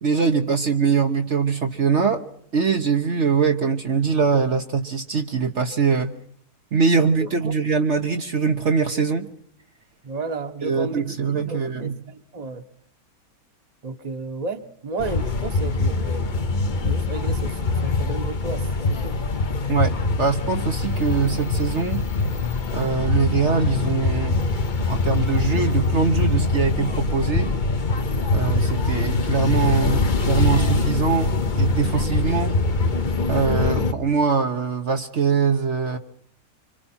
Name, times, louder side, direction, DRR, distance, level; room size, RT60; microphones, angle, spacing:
voice 1, 0.0-2.2 2.5-6.1 6.7-9.3 10.6-12.0 19.7-22.0 22.7-24.4 24.9-27.5 28.3-31.3 31.6-32.5 33.3-36.0, right 5 dB, 55° right, 4 dB, 1.3 m, -22 dB
voice 2, 7.2-7.5 10.0-11.1 11.3-12.6 13.8-19.2, right 3 dB, 30° right, 8 dB, 1.2 m, -33 dB
sound 1, 15.0-33.9, left 3 dB, 35° left, 1.0 m, -23 dB
26.0 x 25.5 x 4.4 m, 0.67 s
omnidirectional pair, 1.6 m